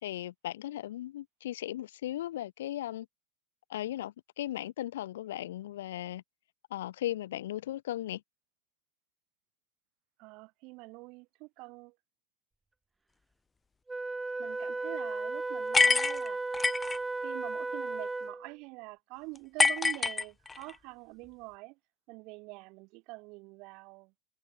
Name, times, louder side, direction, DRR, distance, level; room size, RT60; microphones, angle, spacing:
voice 1, 0.0-3.1 3.7-6.2 6.7-8.2, left 13 dB, 80° left, 3.9 m, -37 dB
voice 2, 10.2-11.9 14.4-16.4 17.2-21.7 22.1-24.1, right 26 dB, 40° right, 4.0 m, -45 dB
Wind instrument woodwind instrument, 13.9-18.5, right 3 dB, 5° right, 3.2 m, -35 dB
sound 1, 15.7-17.0 19.6-20.7, left 4 dB, 10° left, 0.9 m, -26 dB
supercardioid pair, 160°, 0 cm